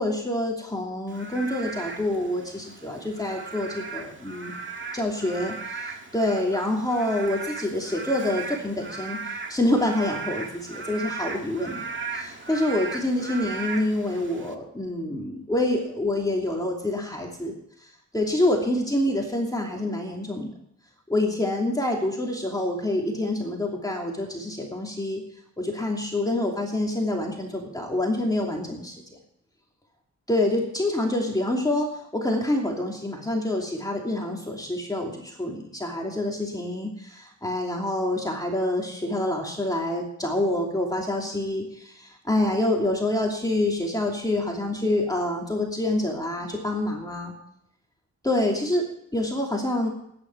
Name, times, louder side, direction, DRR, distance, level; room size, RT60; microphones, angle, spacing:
voice 1, 0.0-4.5 4.9-11.8 12.1-17.5 17.8-20.5 21.1-25.2 25.6-28.9 30.3-47.3 48.2-49.9, left 1 dB, 10° left, -1 dB, 2.7 m, -27 dB
Frog / Rain, 1.1-14.5, right 4 dB, 40° right, 1.8 m, -37 dB
18.0 x 9.9 x 4.6 m, 0.76 s
cardioid pair, 80°, 30 cm